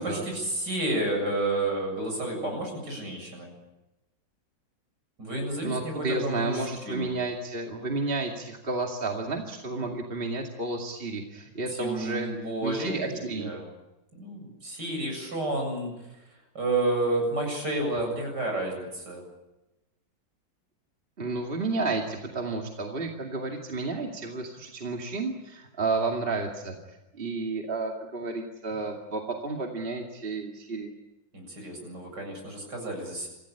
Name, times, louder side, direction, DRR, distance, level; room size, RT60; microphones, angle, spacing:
voice 1, 0.0-3.5 5.2-7.1 11.7-13.7 14.1-15.9 16.5-19.2 31.3-33.3, right 2 dB, 60° right, 2 dB, 8.3 m, -30 dB
voice 2, 5.6-12.3 12.6-13.5 21.2-26.8 27.1-30.9, right 3 dB, 30° right, 1 dB, 2.5 m, -31 dB
26.5 x 16.0 x 9.9 m, 0.98 s
omnidirectional pair, 2.1 m